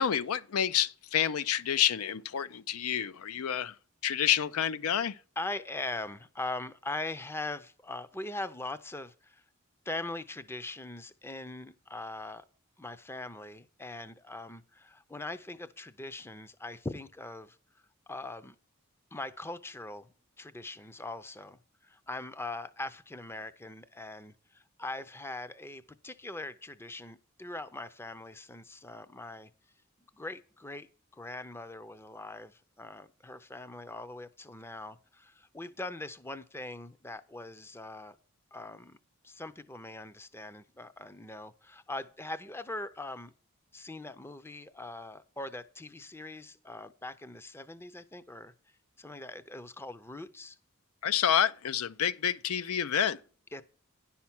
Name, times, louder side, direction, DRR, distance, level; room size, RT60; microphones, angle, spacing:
voice 1, 0.0-3.7 4.0-5.2 51.0-53.2, left 9 dB, 85° left, 0.5 m, -28 dB
voice 2, 5.4-9.4 9.9-12.4 12.8-17.6 18.1-18.6 19.1-20.1 20.4-29.5 30.1-30.9 31.1-38.2 38.5-39.0 39.2-43.3 43.7-48.5 49.0-50.6 53.5-53.6, left 2 dB, 10° left, 0.5 m, -41 dB
10.5 x 5.8 x 5.9 m
head